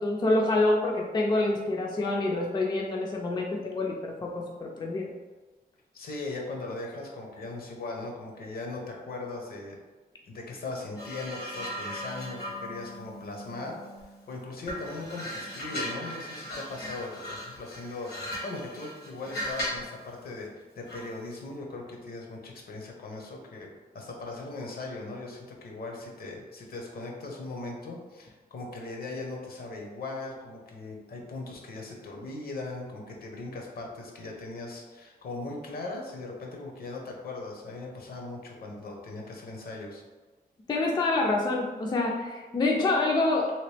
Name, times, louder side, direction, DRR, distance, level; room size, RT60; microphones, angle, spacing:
voice 1, 0.0-5.1 40.7-43.5, left 2 dB, 25° left, 0 dB, 0.3 m, -27 dB
voice 2, 5.9-9.8 10.3-13.8 14.3-40.0, left 2 dB, 70° left, 0 dB, 0.8 m, -39 dB
sound 1, 11.0-14.2 14.6-19.9 20.9-21.1, equal, 85° left, 1.3 m, -38 dB
3.0 x 2.9 x 3.2 m, 1.3 s
wide cardioid pair, 160°, 16 cm